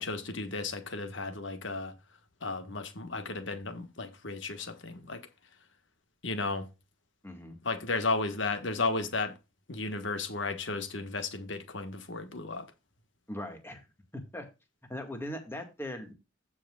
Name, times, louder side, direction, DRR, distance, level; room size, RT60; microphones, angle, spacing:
voice 1, 0.0-1.9 2.4-5.3 6.2-6.7 7.6-9.4 9.7-12.7, left 3 dB, 65° left, 1.5 m, -34 dB
voice 2, 7.2-7.6 13.3-13.9 14.1-14.5 14.9-16.1, left 1 dB, 10° left, 1.9 m, -39 dB
15.5 x 5.9 x 2.4 m
head